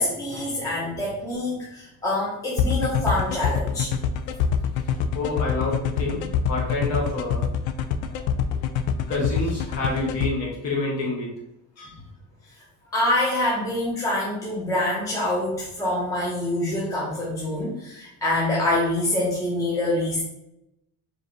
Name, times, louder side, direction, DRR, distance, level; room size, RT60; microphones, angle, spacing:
voice 1, 0.0-3.9 12.9-20.2, left 1 dB, 10° left, -7 dB, 0.7 m, -25 dB
sound 1, 2.6-10.3, left 8 dB, 75° left, 0.5 m, -24 dB
voice 2, 5.1-7.5 8.1-11.3 11.8-11.9, left 2 dB, 45° left, -3 dB, 0.9 m, -29 dB
4.6 x 2.6 x 3.1 m, 0.83 s
cardioid pair, 175°, 39 cm